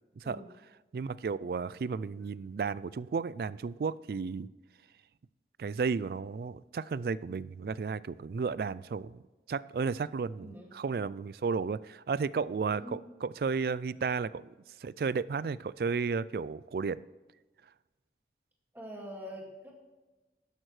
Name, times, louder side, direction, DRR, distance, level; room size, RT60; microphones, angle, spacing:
voice 1, 0.9-4.5 5.6-9.2 9.5-14.5 14.8-17.0, right 5 dB, 55° right, 19 dB, 0.3 m, -33 dB
voice 2, 10.4-10.7 12.7-13.0 18.7-19.7, equal, 10° right, -1 dB, 2.1 m, -44 dB
12.5 x 11.0 x 3.3 m, 1.2 s
head